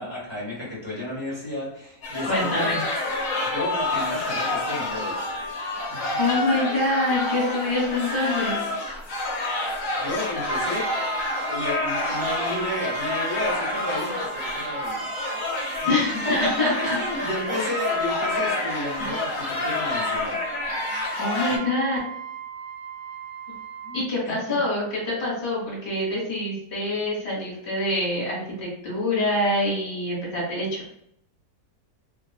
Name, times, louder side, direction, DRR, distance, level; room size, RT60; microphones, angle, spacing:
voice 1, 0.0-2.7 3.4-5.3 5.9-6.2 10.0-10.9 11.5-15.1 15.8-15.9 16.2-20.4 23.8-24.0, left 1 dB, 20° right, -7 dB, 1.2 m, -32 dB
sound 1, 2.0-21.6, left 2 dB, 65° left, 1.0 m, -28 dB
voice 2, 2.3-2.8 6.2-8.6 15.9-17.0 19.0-19.1 21.2-22.0 23.9-30.9, left 2 dB, 45° left, -3 dB, 1.4 m, -25 dB
Brass instrument, 10.5-24.1, right 8 dB, 75° right, 1.0 m, -37 dB
3.3 x 2.3 x 2.3 m, 0.72 s
omnidirectional pair, 1.7 m